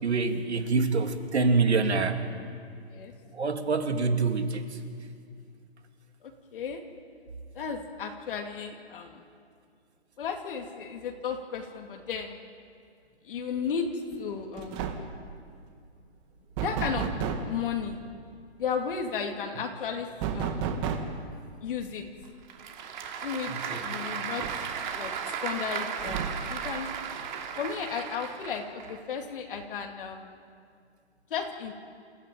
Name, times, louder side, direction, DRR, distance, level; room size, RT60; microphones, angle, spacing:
voice 1, 0.0-2.2 3.2-4.8 23.5-23.8, right 4 dB, 80° right, 6 dB, 2.8 m, -26 dB
voice 2, 6.5-6.8 7.5-9.2 10.2-12.4 13.2-13.9 14.2-14.9 16.6-17.1 17.4-18.0 18.6-20.1 20.3-20.7 21.6-22.1 23.2-24.5 24.9-26.9 27.6-30.3 31.3-31.7, left 6 dB, 55° left, 2 dB, 2.5 m, -34 dB
sound 1, 14.1-14.3 14.6-15.2 16.6-17.6 20.2-21.3 22.8-22.9 23.3-23.4 24.4-25.1 26.0-26.6, right 6 dB, 25° right, 2.0 m, -32 dB
Applause / Crowd, 22.2-29.0, right 7 dB, 45° right, 2.8 m, -35 dB
29.0 x 14.5 x 9.2 m, 2.2 s
hypercardioid pair, 150°, 32 cm